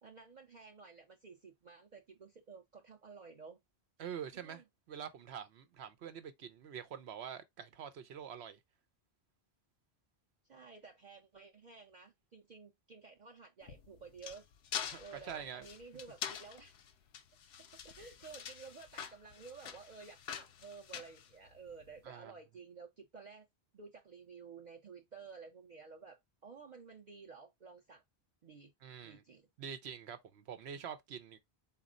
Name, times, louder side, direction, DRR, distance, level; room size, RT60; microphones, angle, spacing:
voice 1, 0.0-3.6 4.3-4.6 10.5-14.5 15.0-16.8 17.6-23.5 23.7-28.0 28.4-28.7 29.0-29.5, right 5 dB, 50° right, 0.7 m, -53 dB
voice 2, 4.0-8.6 14.8-15.7 22.0-22.3 28.8-29.2 29.6-31.4, right 8 dB, 85° right, 1.0 m, -46 dB
sound 1, 13.6-21.9, left 8 dB, 75° left, 0.9 m, -45 dB
4.1 x 2.4 x 3.7 m
omnidirectional pair, 1.1 m